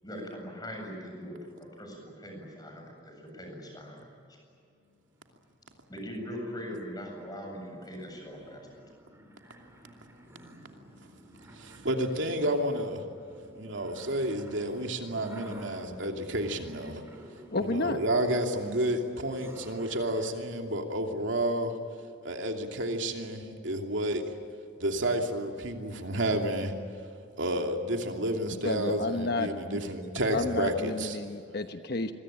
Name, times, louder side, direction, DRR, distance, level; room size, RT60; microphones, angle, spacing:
voice 1, 0.0-1.4 1.8-4.4 5.9-8.6, equal, 20° left, 1 dB, 7.9 m, -41 dB
sound 1, 4.7-20.3, equal, 15° right, 4.1 m, -51 dB
voice 2, 11.5-13.0 13.6-17.0 17.6-21.7 22.2-24.3 24.8-26.7 27.4-31.2, right 1 dB, 70° right, 3 dB, 2.8 m, -30 dB
voice 3, 17.5-18.0 28.6-29.8 30.3-32.1, left 2 dB, 55° left, 7 dB, 1.2 m, -31 dB
27.0 x 22.5 x 8.9 m, 2.5 s
head